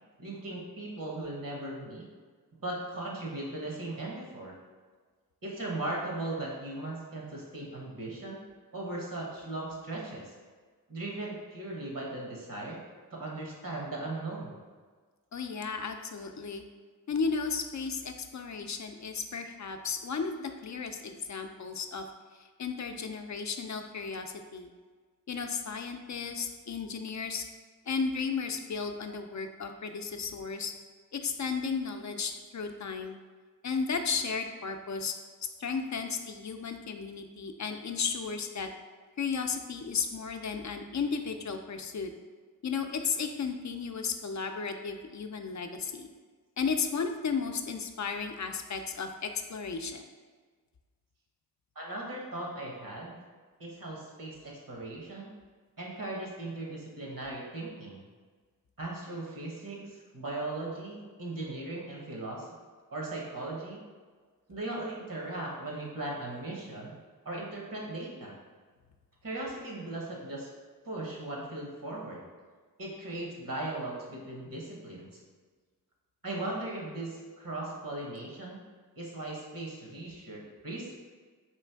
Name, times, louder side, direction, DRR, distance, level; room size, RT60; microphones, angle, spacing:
voice 1, 0.2-2.0 2.6-4.5 5.4-8.4 8.7-10.3 10.9-12.8 13.1-14.6 51.7-53.1 53.6-55.3 55.8-58.0 58.8-62.5 62.9-63.8 64.5-66.9 67.2-68.3 69.2-70.5 70.8-72.2 72.8-75.1 76.2-78.6 79.0-80.9, right 2 dB, 65° right, -2 dB, 1.1 m, -38 dB
voice 2, 15.3-16.6 17.1-22.0 22.4-24.7 25.3-27.4 27.9-30.7 31.1-33.2 33.6-35.1 35.6-38.7 39.2-42.1 42.6-46.1 46.6-50.1, left 5 dB, 55° left, 6 dB, 0.4 m, -34 dB
3.3 x 3.1 x 4.4 m, 1.5 s
wide cardioid pair, 60°, 35 cm